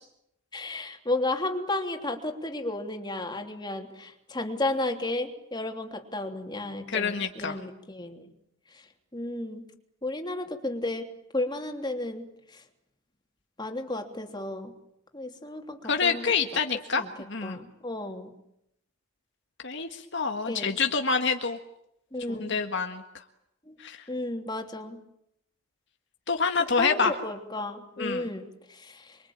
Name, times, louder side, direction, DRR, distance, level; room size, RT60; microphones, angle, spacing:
voice 1, 0.5-8.2 9.1-9.7 10.0-11.1 11.3-12.3 12.5-12.6 13.6-14.7 15.1-16.3 16.9-17.1 17.4-18.3 20.4-20.7 22.1-22.5 23.7-23.8 24.1-25.0 26.8-29.2, left 2 dB, 20° left, 4 dB, 3.1 m, -33 dB
voice 2, 6.9-7.6 15.9-17.6 19.6-21.6 22.3-23.0 23.8-24.0 26.3-27.1 28.0-28.3, left 5 dB, 60° left, 5 dB, 1.7 m, -27 dB
28.0 x 23.5 x 8.8 m, 0.79 s
head